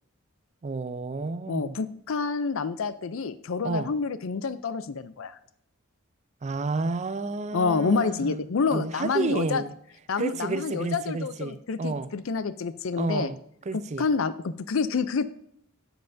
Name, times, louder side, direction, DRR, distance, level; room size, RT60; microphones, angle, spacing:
voice 1, 0.6-1.8 3.6-3.9 6.4-9.7 10.2-12.1 13.0-13.4 13.7-14.1, right 3 dB, 35° right, 0.4 m, -31 dB
voice 2, 1.5-5.4 7.5-9.6 10.1-13.3 14.0-15.3, left 5 dB, 65° left, 0.5 m, -28 dB
16.0 x 5.6 x 2.6 m
head